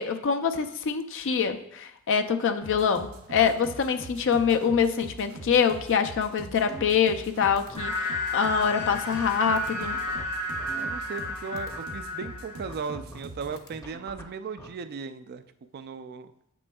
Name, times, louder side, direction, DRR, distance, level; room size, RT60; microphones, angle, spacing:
voice 1, 0.0-10.0, left 6 dB, 60° left, 8 dB, 0.4 m, -25 dB
sound 1, 2.6-13.6, right 2 dB, 70° right, 0.7 m, -43 dB
sound 2, 6.7-7.3 7.6-7.8 8.3-8.4 8.7-11.3 11.6-11.8 12.7-14.7, equal, 15° left, 0.7 m, -45 dB
sound 3, 7.8-12.8, left 1 dB, 80° left, 2.1 m, -32 dB
voice 2, 10.7-15.4 15.7-16.3, right 5 dB, 45° right, 11 dB, 0.4 m, -37 dB
7.7 x 6.1 x 2.3 m, 0.75 s
head